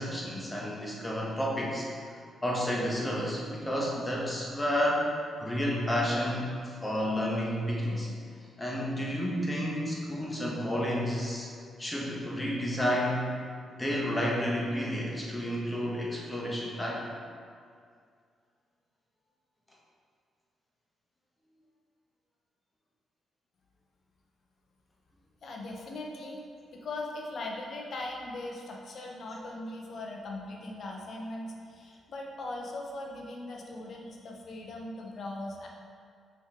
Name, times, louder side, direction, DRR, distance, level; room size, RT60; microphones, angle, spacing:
voice 1, 0.0-1.9 2.4-5.1 5.4-8.1 8.6-11.5 11.8-13.3 13.8-17.0, equal, 20° left, -3 dB, 1.5 m, -30 dB
voice 2, 25.4-26.4 26.7-35.7, left 2 dB, 60° left, 0 dB, 0.9 m, -39 dB
5.5 x 4.7 x 4.4 m, 2.2 s
supercardioid pair, 65°, 0 cm